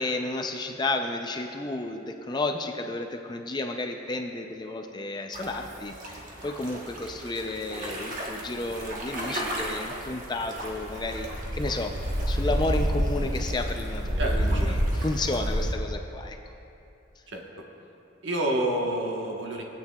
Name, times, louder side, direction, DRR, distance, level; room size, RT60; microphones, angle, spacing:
voice 1, 0.0-11.9 12.3-16.4, left 2 dB, 20° left, 4 dB, 0.4 m, -32 dB
sound 1, 5.3-15.7, equal, 40° right, 1.1 m, -30 dB
voice 2, 14.2-14.8 17.3-17.4 18.2-19.6, right 1 dB, 60° right, 0 dB, 1.1 m, -28 dB
19.0 x 8.6 x 2.3 m, 2.8 s
head